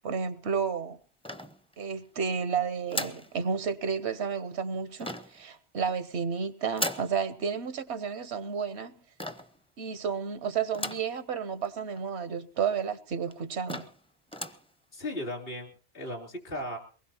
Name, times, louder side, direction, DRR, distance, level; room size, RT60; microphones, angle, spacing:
voice 1, 0.0-1.0 1.8-8.9 9.8-13.9, right 6 dB, 80° right, 1.2 m, -31 dB
sound 1, 1.2-2.0 2.9-3.3 5.0-5.4 6.7-7.2 9.2-9.6 10.7-11.2 11.6-11.7 11.9-12.0 12.8-12.9 13.3-13.4 13.7-14.0 14.3-14.7, left 1 dB, 5° left, 0.6 m, -36 dB
voice 2, 14.9-16.8, left 1 dB, 65° left, 3.7 m, -36 dB
22.5 x 20.0 x 2.9 m
omnidirectional pair, 1.1 m